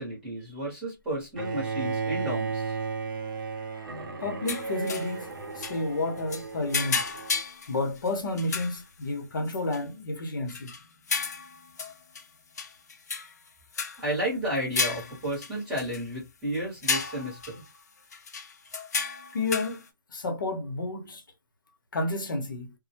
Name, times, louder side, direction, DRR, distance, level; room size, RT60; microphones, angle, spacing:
voice 1, 0.0-2.8 14.0-17.6, equal, 5° right, 0.9 m, -32 dB
Bowed string instrument, 1.4-7.4, right 5 dB, 70° right, 0.6 m, -34 dB
voice 2, 4.2-7.1 7.7-10.7 19.3-19.8 20.1-21.2 21.9-22.7, left 2 dB, 65° left, 0.8 m, -31 dB
sound 1, 4.5-5.2 5.6-5.8 6.2-8.1 8.4-8.8 9.5-9.8 10.3-12.2 12.6-13.5 13.7-14.0 14.6-16.1 16.5-16.6 16.8-17.7 18.1-19.8, left 5 dB, 50° left, 0.5 m, -33 dB
2.1 x 2.1 x 2.7 m
hypercardioid pair, 175°, 12 cm